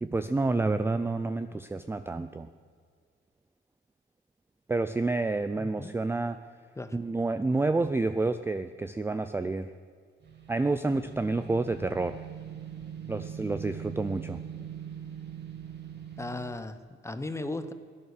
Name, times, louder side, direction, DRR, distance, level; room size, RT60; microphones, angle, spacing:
voice 1, 0.0-2.5 4.7-6.4 6.9-9.7 10.5-12.2 13.1-14.4, right 3 dB, 10° right, 10 dB, 0.4 m, -29 dB
voice 2, 5.6-6.0 6.8-7.0 14.6-14.7 16.2-17.7, left 2 dB, 15° left, 11 dB, 0.9 m, -37 dB
sound 1, 10.2-16.6, right 9 dB, 55° right, 2.1 m, -42 dB
17.0 x 11.0 x 6.6 m, 2.1 s
cardioid pair, 140°, 21 cm